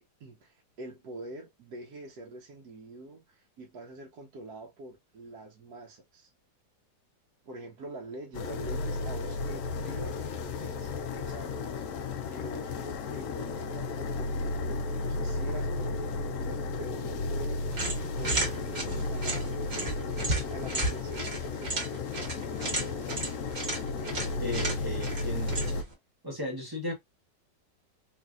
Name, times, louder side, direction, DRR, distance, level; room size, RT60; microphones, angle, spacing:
voice 1, 0.0-6.3 7.4-11.8 12.3-17.7 18.2-22.3, right 2 dB, 65° right, 1.2 m, -45 dB
sound 1, 8.3-25.8, left 3 dB, 75° left, 0.7 m, -33 dB
sound 2, 17.7-25.9, right 2 dB, 40° right, 1.3 m, -34 dB
voice 2, 24.4-25.6 26.2-26.9, left 1 dB, 15° right, 0.8 m, -35 dB
3.4 x 3.2 x 2.4 m
omnidirectional pair, 1.9 m